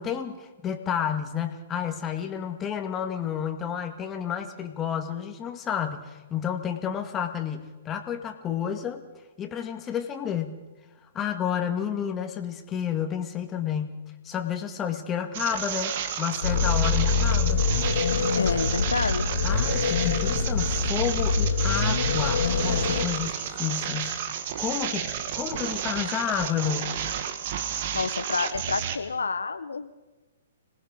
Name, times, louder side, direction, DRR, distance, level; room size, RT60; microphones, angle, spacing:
voice 1, 0.0-9.0 9.4-10.6 11.1-14.0 14.2-17.6 19.4-24.2 24.6-27.0, left 8 dB, 20° left, 6 dB, 2.0 m, -30 dB
sound 1, 15.3-29.0, right 9 dB, 50° right, 1.7 m, -31 dB
sound 2, 16.4-23.0, left 5 dB, 60° left, 2.7 m, -25 dB
voice 2, 18.4-19.3 27.9-29.9, left 4 dB, 80° left, 10 dB, 1.0 m, -28 dB
26.0 x 19.5 x 5.2 m, 1.2 s
figure-of-eight pair, 120°, 0 cm